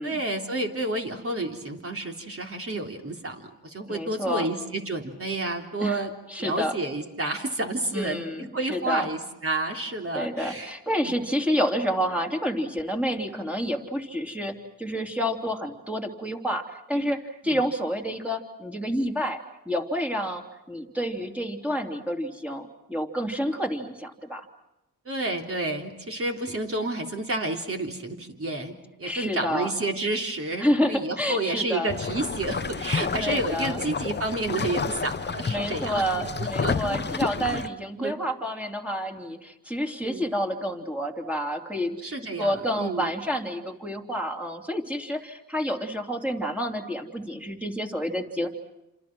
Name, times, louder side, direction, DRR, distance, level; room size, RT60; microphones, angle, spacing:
voice 1, 0.0-6.1 6.4-8.2 8.5-10.7 11.0-11.2 17.5-17.6 25.1-37.0 37.4-37.7 38.0-38.2 40.0-40.3 42.0-43.1, right 2 dB, 35° right, 2 dB, 3.7 m, -30 dB
voice 2, 3.9-4.5 5.8-6.0 6.3-6.7 7.9-9.1 10.1-19.4 19.6-24.5 29.0-29.7 30.6-31.9 33.2-33.8 35.5-42.1 42.4-48.5, equal, 5° right, 2 dB, 3.1 m, -29 dB
sound 1, 31.9-37.7, left 5 dB, 30° left, 0.9 m, -30 dB
28.0 x 27.5 x 6.2 m, 0.94 s
cardioid pair, 75°, 38 cm